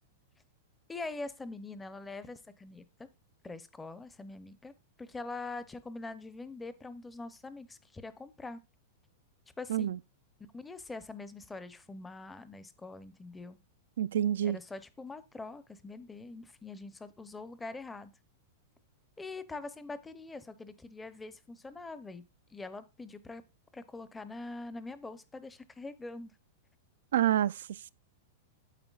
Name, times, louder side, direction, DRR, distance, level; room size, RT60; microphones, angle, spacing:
voice 1, 0.9-2.8 3.4-4.7 5.0-8.6 9.6-9.9 10.5-13.6 14.4-18.1 19.2-22.2 22.5-23.4 23.7-26.3 27.2-27.3, left 3 dB, 10° left, 0.6 m, -43 dB
voice 2, 14.0-14.6 27.1-27.9, right 11 dB, 80° right, 0.3 m, -28 dB
9.1 x 7.7 x 2.3 m
supercardioid pair, 155°, 0 cm